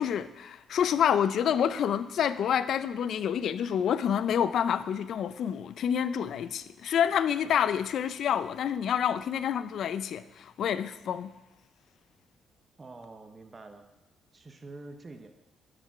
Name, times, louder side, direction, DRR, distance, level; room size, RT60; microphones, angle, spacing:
voice 1, 0.0-11.3, left 8 dB, 70° left, 14 dB, 0.4 m, -28 dB
voice 2, 12.8-13.9 14.3-15.3, right 3 dB, 30° right, 6 dB, 0.8 m, -46 dB
12.0 x 5.0 x 5.6 m, 1.1 s
cardioid pair, 90°, 0 cm